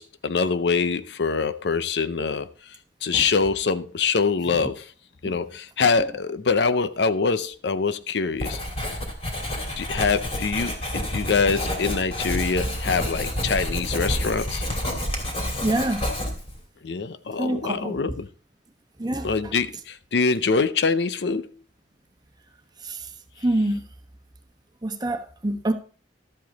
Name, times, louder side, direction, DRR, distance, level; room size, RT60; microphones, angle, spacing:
voice 1, 0.0-2.5 3.0-4.9 5.2-8.6 9.8-14.6 16.8-18.3 19.2-21.5, left 4 dB, 70° left, 0.6 m, -24 dB
Writing, 8.4-16.6, left 1 dB, 35° left, 2.7 m, -29 dB
voice 2, 15.6-16.0 17.4-18.0 19.0-19.3 22.8-23.0 23.4-23.8 24.8-25.7, right 1 dB, 25° right, 1.1 m, -25 dB
12.5 x 7.7 x 4.1 m
head